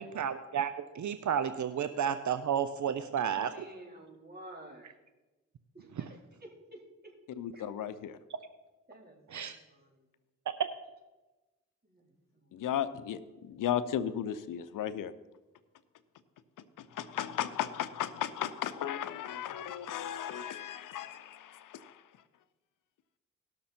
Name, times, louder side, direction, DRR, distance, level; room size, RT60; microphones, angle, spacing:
voice 1, 0.0-3.5 6.0-6.1 9.3-9.6, right 8 dB, 65° right, 11 dB, 0.7 m, -32 dB
voice 2, 3.1-4.9 5.7-7.1 7.5-7.9 8.9-10.0 11.8-12.1, right 1 dB, 30° right, -1 dB, 4.2 m, -52 dB
voice 3, 7.4-8.2 12.5-15.1 16.9-21.9, left 10 dB, 85° left, 13 dB, 0.7 m, -35 dB
18.5 x 6.7 x 4.4 m, 1.1 s
supercardioid pair, 45°, 31 cm